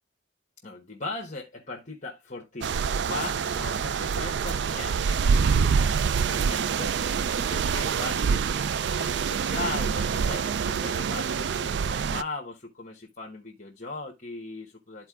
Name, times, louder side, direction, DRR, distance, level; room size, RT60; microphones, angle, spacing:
voice 1, 0.6-5.9 6.2-15.1, left 3 dB, 40° left, 1.2 m, -39 dB
sound 1, 2.6-12.2, right 6 dB, 60° right, 0.3 m, -26 dB
13.0 x 4.6 x 2.4 m
head